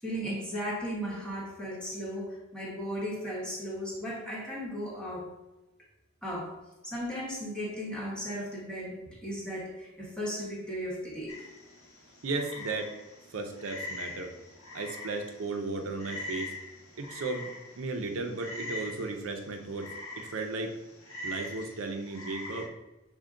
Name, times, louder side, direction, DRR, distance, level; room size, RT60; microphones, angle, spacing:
voice 1, 0.0-5.3 6.2-6.5 6.8-11.4, equal, 5° left, -5 dB, 1.0 m, -36 dB
Frog, 11.3-22.7, left 2 dB, 85° left, 1.1 m, -43 dB
voice 2, 12.2-12.9 13.3-14.3 14.7-16.5 17.0-17.5 17.8-20.7 21.2-22.7, right 3 dB, 75° right, 3 dB, 0.5 m, -35 dB
6.1 x 2.2 x 3.7 m, 1.0 s
head